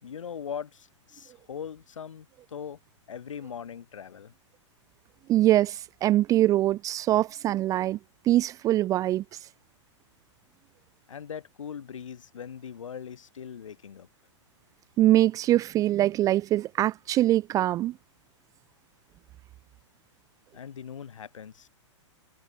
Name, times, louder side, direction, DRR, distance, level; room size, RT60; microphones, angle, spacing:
voice 1, 0.0-2.8 3.1-4.3 11.1-14.1 20.5-21.7, left 7 dB, 85° left, 4.7 m, -40 dB
voice 2, 5.3-8.0 8.3-9.2 15.0-17.9, right 14 dB, 20° right, 0.4 m, -23 dB
hypercardioid pair, 135°, 16 cm